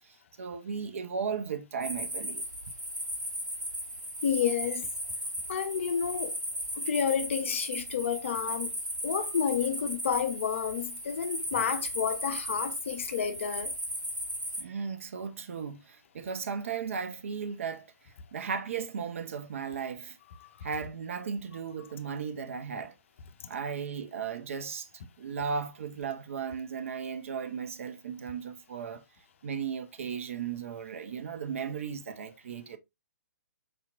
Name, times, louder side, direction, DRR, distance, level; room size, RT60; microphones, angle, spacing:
voice 1, 0.1-2.4 14.6-17.9 18.3-20.2 20.6-22.9 23.5-24.9 25.2-29.0 29.4-32.8, right 6 dB, 45° right, 0.4 m, -36 dB
sound 1, 1.8-14.6, equal, 80° right, 1.4 m, -36 dB
voice 2, 4.2-4.9 5.5-6.4 6.8-8.7 9.0-13.7 20.4-20.7, left 7 dB, 45° left, 0.5 m, -30 dB
4.8 x 2.8 x 2.3 m
figure-of-eight pair, 130°, 10 cm